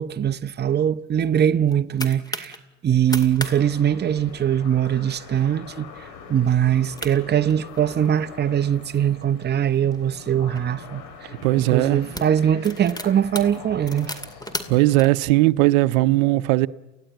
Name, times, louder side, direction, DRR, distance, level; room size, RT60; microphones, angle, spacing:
voice 1, 0.0-2.5 2.8-11.3 11.6-14.1, right 9 dB, 25° right, 0.7 m, -22 dB
sound 1, 1.4-2.6 3.0-3.6 3.8-3.9 4.3-4.6 5.2-5.4 5.9-6.0 6.7-6.8 7.0-8.2 8.8-10.6 11.4-11.6 11.9-15.1, left 1 dB, 10° left, 2.3 m, -35 dB
sound 2, 3.4-15.1, left 6 dB, 70° left, 4.6 m, -43 dB
voice 2, 11.4-12.0 14.7-16.7, right 19 dB, 85° right, 0.7 m, -18 dB
28.5 x 16.0 x 9.1 m
supercardioid pair, 95°, 40 cm